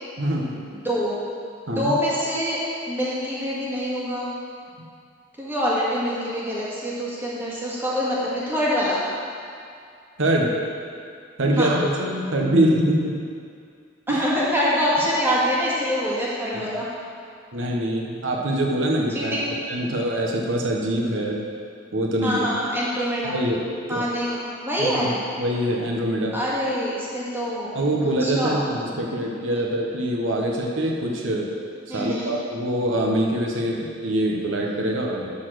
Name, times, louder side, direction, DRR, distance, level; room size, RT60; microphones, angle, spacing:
voice 1, 0.2-0.7 1.7-2.0 10.2-10.5 11.4-13.1 14.1-14.2 16.5-16.6 17.5-21.4 21.9-22.6 23.2-24.1 24.8-26.4 27.7-31.5 31.9-35.3, right 1 dB, 80° right, -1 dB, 1.1 m, -24 dB
voice 2, 0.7-1.2 1.8-2.6 2.9-4.3 5.4-9.0 11.6-11.8 14.1-16.9 19.1-19.5 22.2-23.3 23.9-25.1 26.3-27.8 28.2-28.6 31.9-32.3, equal, 10° right, -7 dB, 1.8 m, -25 dB
11.5 x 4.1 x 6.2 m, 2.3 s
head